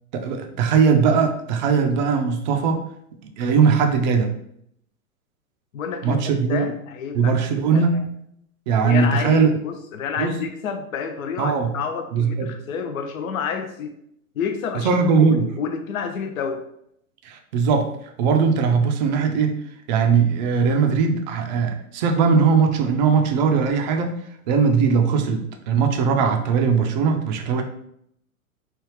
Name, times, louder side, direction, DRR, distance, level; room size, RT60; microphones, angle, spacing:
voice 1, 0.1-2.8 3.4-4.3 6.0-6.7 7.1-8.1 8.7-9.5 10.2-10.4 11.4-11.7 12.1-12.5 14.8-15.5 17.2-17.9 18.2-19.6 19.9-24.2 24.5-27.6, right 5 dB, 35° right, 5 dB, 0.4 m, -19 dB
voice 2, 5.7-7.4 7.7-8.0 8.7-13.9 14.4-15.0 15.3-16.6, left 6 dB, 70° left, 7 dB, 0.5 m, -29 dB
3.2 x 2.3 x 3.1 m, 0.73 s
figure-of-eight pair, 100°, 43 cm